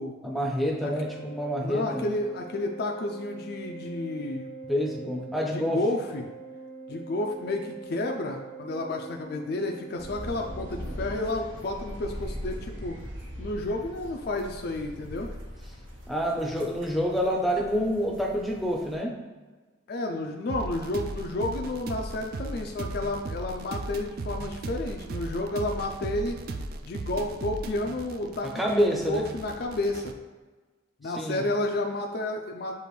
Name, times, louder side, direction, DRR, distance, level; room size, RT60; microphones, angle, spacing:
voice 1, 0.2-2.0 4.7-5.8 16.1-19.1 28.4-29.3 31.2-31.4, equal, ahead, -1 dB, 0.5 m, -27 dB
Organ, 0.7-11.4, right 4 dB, 90° left, 0.9 m, -44 dB
voice 2, 1.6-4.5 5.5-6.3 6.9-13.0 13.4-15.3 19.9-26.4 26.8-30.1 31.0-32.8, left 2 dB, 50° left, 2 dB, 0.4 m, -31 dB
sound 1, 10.0-19.0, equal, 75° right, 0.9 m, -40 dB
sound 2, 20.5-30.1, right 2 dB, 50° right, 0.3 m, -37 dB
6.7 x 2.5 x 3.1 m, 1.3 s
head